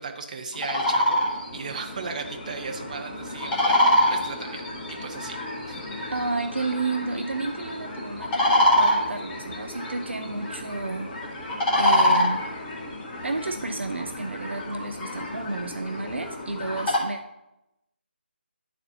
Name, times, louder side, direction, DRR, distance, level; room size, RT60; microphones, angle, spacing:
voice 1, 0.0-5.4 5.6-6.1, right 4 dB, 40° right, 3 dB, 0.9 m, -36 dB
sound 1, 0.5-17.0, left 1 dB, 10° left, 0.8 m, -26 dB
voice 2, 6.1-11.1 11.8-12.4 13.2-17.2, right 3 dB, 75° right, 7 dB, 0.5 m, -31 dB
10.5 x 4.2 x 2.8 m, 0.89 s
figure-of-eight pair, 160°, 6 cm